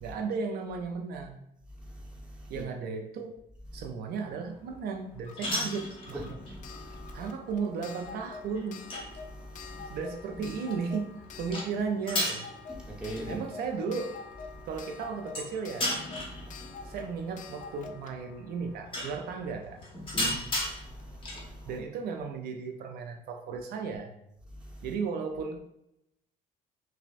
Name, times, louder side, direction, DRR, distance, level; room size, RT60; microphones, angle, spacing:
voice 1, 0.0-1.4 2.5-3.4 3.7-6.2 7.1-8.8 9.9-11.1 11.4-12.5 13.2-14.2 14.6-16.0 16.8-19.8 21.7-24.1 24.8-25.6, right 5 dB, 65° right, 0.5 m, -35 dB
voice 2, 1.8-2.6 6.1-6.4 6.7-7.2 9.3-10.0 12.7-13.4 16.4-16.9 20.1-21.7 24.6-24.9, right 1 dB, 5° right, 1.0 m, -42 dB
sound 1, 4.1-21.8, left 1 dB, 30° left, 1.1 m, -38 dB
Clock, 5.2-19.8 21.0-21.1 21.3-21.4, left 5 dB, 50° left, 0.4 m, -47 dB
5.5 x 2.2 x 2.5 m
cardioid pair, 110°, 17 cm